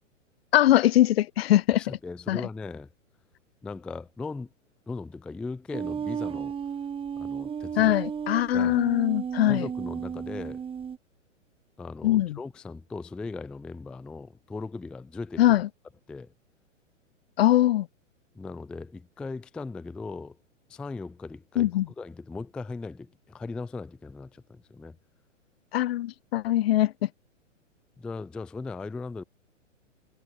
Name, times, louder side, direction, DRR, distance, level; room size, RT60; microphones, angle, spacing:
voice 1, 0.5-1.8 2.3-2.4 7.8-9.7 12.0-12.4 15.4-15.7 17.4-17.9 21.6-21.9 25.7-27.1, left 14 dB, 50° left, 0.8 m, -22 dB
voice 2, 1.8-2.9 3.6-4.5 4.9-6.6 7.2-7.9 8.5-8.9 9.4-10.6 11.8-15.4 16.1-16.3 18.3-20.4 20.7-25.0 28.0-29.2, left 3 dB, 5° left, 0.4 m, -38 dB
sound 1, 5.7-11.0, right 7 dB, 15° right, 2.5 m, -33 dB
hypercardioid pair, 120°, 38 cm